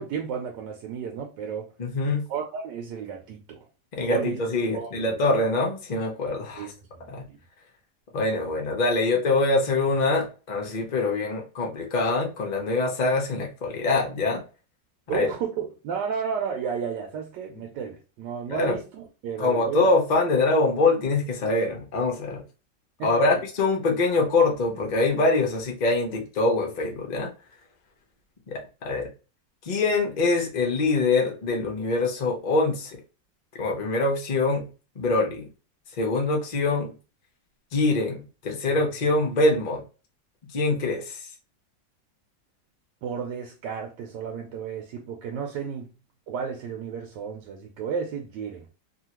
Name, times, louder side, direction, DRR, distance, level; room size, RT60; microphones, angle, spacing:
voice 1, 0.0-1.7 2.3-3.7 4.0-4.4 4.7-5.1 6.5-7.4 15.1-19.9 23.0-23.1 43.0-45.9 46.3-48.7, right 6 dB, 80° right, 1.2 m, -33 dB
voice 2, 1.8-2.3 3.9-6.7 7.1-7.3 8.1-14.4 15.1-15.3 18.5-18.8 19.4-22.4 23.0-27.3 28.5-29.1 29.6-33.0 33.5-34.7 35.0-35.5 36.0-36.9 37.7-39.8 40.5-41.2, left 3 dB, 50° left, 0.5 m, -24 dB
2.8 x 2.7 x 2.8 m
omnidirectional pair, 2.0 m